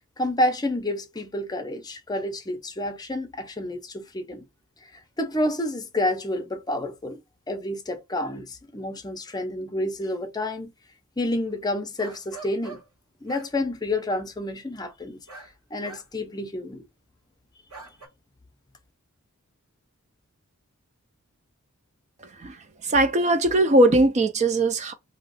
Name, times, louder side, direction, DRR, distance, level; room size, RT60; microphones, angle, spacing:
voice 1, 0.2-4.4 4.8-7.2 7.5-10.7 11.2-12.8 13.2-15.2 15.7-16.8, left 1 dB, 20° left, 0.6 m, -29 dB
sound 1, 11.5-11.6 12.0-12.9 13.3-13.5 15.3-15.5 15.8-16.2 17.7-18.1, right 4 dB, 75° right, 1.4 m, -43 dB
voice 2, 22.8-24.9, right 1 dB, 30° right, 0.4 m, -20 dB
2.8 x 2.4 x 3.9 m
head